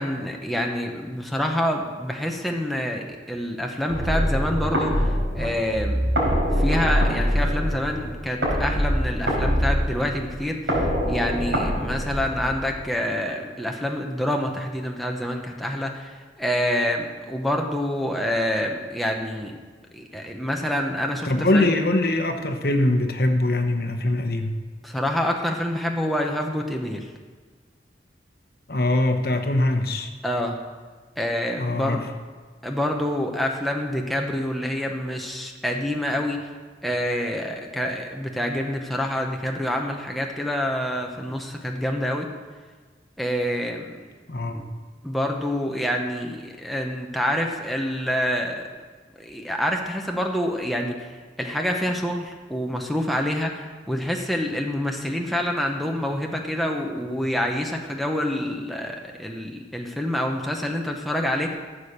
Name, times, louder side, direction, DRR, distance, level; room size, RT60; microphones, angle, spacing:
voice 1, 0.0-5.1 5.3-6.0 6.6-10.8 11.1-19.6 19.9-21.7 24.8-27.1 30.2-30.6 31.2-32.0 32.6-36.4 36.8-42.3 43.2-43.9 44.5-44.6 45.0-48.7 49.2-51.1 51.4-61.5, equal, ahead, 1 dB, 0.9 m, -27 dB
sound 1, 3.9-12.9, equal, 90° right, 4.4 m, -24 dB
voice 2, 21.2-24.5 28.7-30.1 31.6-32.1 44.3-44.6, left 1 dB, 55° left, 6 dB, 1.0 m, -22 dB
14.5 x 7.1 x 6.6 m, 1.5 s
head